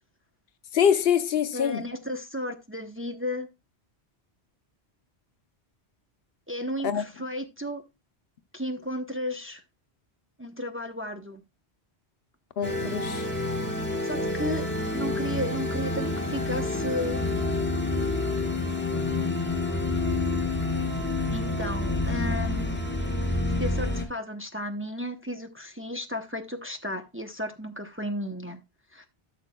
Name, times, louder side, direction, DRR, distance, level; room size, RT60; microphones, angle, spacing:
voice 1, 0.7-1.8 6.8-7.0 12.6-13.2 14.2-14.3, left 8 dB, 65° left, 0.9 m, -24 dB
voice 2, 1.5-3.5 6.5-7.8 8.5-9.6 10.4-11.4 14.0-17.2 21.3-22.8 23.6-28.6 28.9-29.1, left 1 dB, 15° right, 0.7 m, -33 dB
sound 1, 12.6-24.1, left 2 dB, 10° left, 1.3 m, -28 dB
13.0 x 6.7 x 2.2 m
omnidirectional pair, 1.1 m